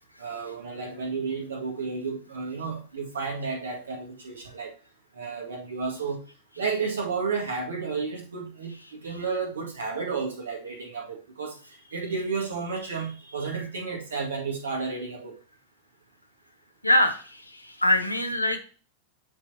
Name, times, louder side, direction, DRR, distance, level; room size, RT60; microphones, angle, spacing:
voice 1, 0.2-4.8 5.1-6.3 6.6-15.4, right 5 dB, 70° right, 1 dB, 2.0 m, -32 dB
voice 2, 16.8-18.6, left 1 dB, 85° left, 6 dB, 1.0 m, -23 dB
11.0 x 4.1 x 2.8 m, 0.36 s
figure-of-eight pair, 90°, 0 cm